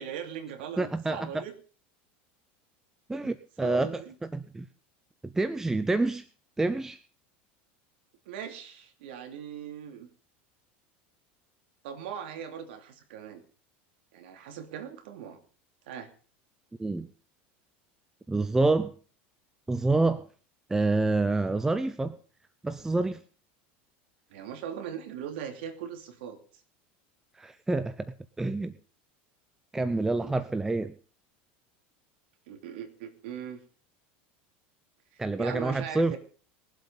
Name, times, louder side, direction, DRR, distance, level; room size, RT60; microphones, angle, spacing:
voice 1, 0.0-1.5 3.2-3.3 3.6-4.1 8.3-10.1 11.8-13.4 14.1-15.4 15.9-16.1 24.3-26.4 29.8-30.3 32.5-33.6 35.1-36.2, right 8 dB, 80° right, 7 dB, 2.9 m, -40 dB
voice 2, 0.8-1.4 3.1-4.7 5.2-6.2 6.6-7.0 16.8-17.1 18.3-18.9 19.7-20.3 20.7-22.2 22.6-23.2 27.3-28.7 29.7-30.9 35.2-36.2, right 2 dB, 10° right, 12 dB, 0.6 m, -27 dB
20.5 x 7.9 x 5.4 m, 0.41 s
supercardioid pair, 135°, 6 cm